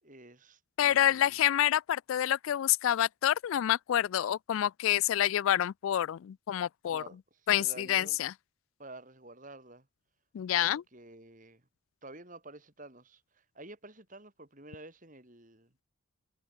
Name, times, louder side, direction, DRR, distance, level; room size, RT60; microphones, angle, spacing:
voice 1, 0.0-1.4 6.9-8.2 8.8-9.9 10.5-11.6 12.0-15.7, right 2 dB, 35° right, 4.4 m, -50 dB
voice 2, 0.8-7.0 7.5-8.3 10.3-10.8, left 11 dB, 70° left, 0.3 m, -28 dB
head